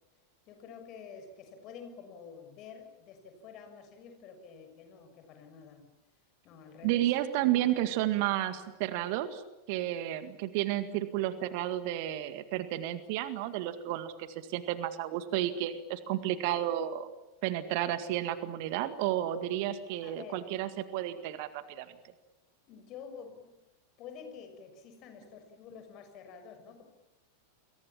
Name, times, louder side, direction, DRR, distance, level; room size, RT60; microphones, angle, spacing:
voice 1, 0.5-5.8 6.4-7.1 20.0-20.4 22.7-23.5 24.0-26.8, left 6 dB, 40° left, 6 dB, 6.5 m, -49 dB
voice 2, 6.8-9.4 9.7-17.1 17.4-21.9, right 13 dB, 45° right, 12 dB, 1.9 m, -32 dB
29.5 x 23.0 x 7.4 m, 0.99 s
figure-of-eight pair, 90°, 0 cm